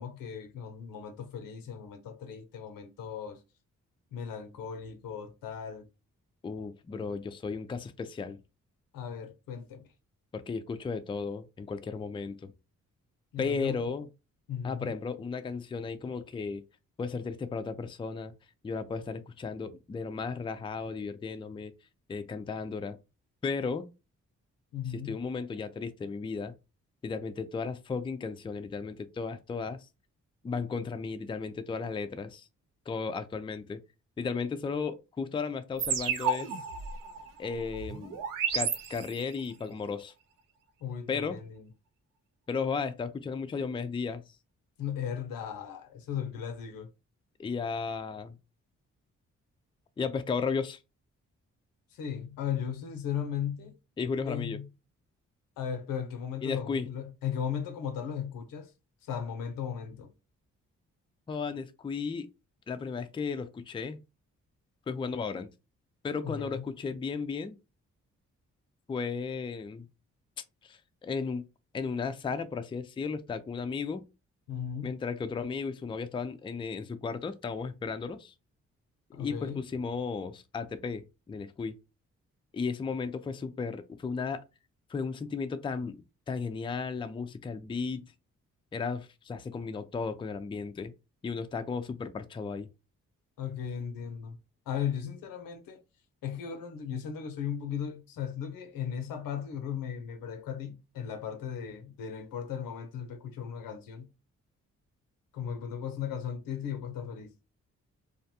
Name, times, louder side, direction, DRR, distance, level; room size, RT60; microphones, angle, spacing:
voice 1, 0.0-3.4 4.1-5.9 8.9-9.9 13.3-13.8 14.5-14.9 24.7-25.2 40.8-41.7 44.8-46.9 51.9-53.7 54.3-54.7 55.6-58.7 59.0-60.1 66.2-66.6 74.5-74.9 79.1-79.6 93.4-94.4 94.7-95.8 96.2-104.1 105.3-107.3, left 8 dB, 80° left, 0.6 m, -36 dB
voice 2, 6.4-8.4 10.3-12.5 13.4-14.1 14.6-16.6 17.0-18.3 18.6-21.7 22.1-23.0 23.4-23.9 24.9-26.5 27.0-29.9 30.4-32.5 32.9-33.8 34.2-36.5 37.4-38.2 38.5-40.1 41.1-41.4 42.5-44.2 47.4-48.4 50.0-50.8 54.0-54.6 56.4-56.9 61.3-62.3 62.7-64.0 64.9-65.5 66.0-67.6 68.9-69.9 70.6-71.4 71.7-74.0 74.8-78.3 79.2-81.7 82.5-84.4 84.9-86.0 86.3-88.0 88.7-90.9 91.2-92.7, left 5 dB, 15° left, 0.3 m, -34 dB
sound 1, 35.8-39.5, right 6 dB, 75° right, 0.5 m, -33 dB
2.5 x 2.2 x 2.7 m
supercardioid pair, 45°, 33 cm